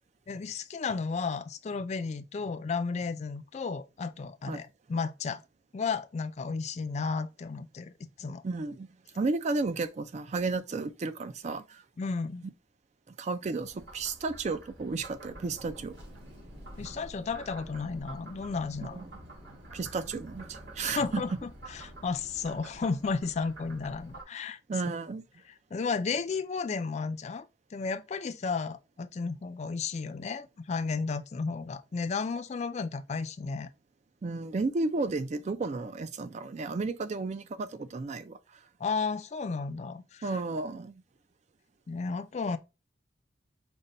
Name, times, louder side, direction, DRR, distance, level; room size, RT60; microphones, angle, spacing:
voice 1, 0.3-5.4 5.7-8.4 12.0-12.5 16.8-19.0 20.8-24.6 25.7-27.4 27.7-33.7 38.8-40.4 41.9-42.6, left 4 dB, 35° left, 0.3 m, -33 dB
voice 2, 8.4-8.9 9.1-11.8 13.1-16.0 18.9-19.0 19.7-21.2 24.7-25.2 34.2-38.6 40.2-41.0, right 3 dB, 35° right, 0.4 m, -33 dB
Frog, 13.6-24.2, right 1 dB, 70° right, 2.6 m, -49 dB
sound 1, 15.2-22.8, right 1 dB, 90° right, 1.4 m, -54 dB
5.2 x 2.2 x 4.1 m
head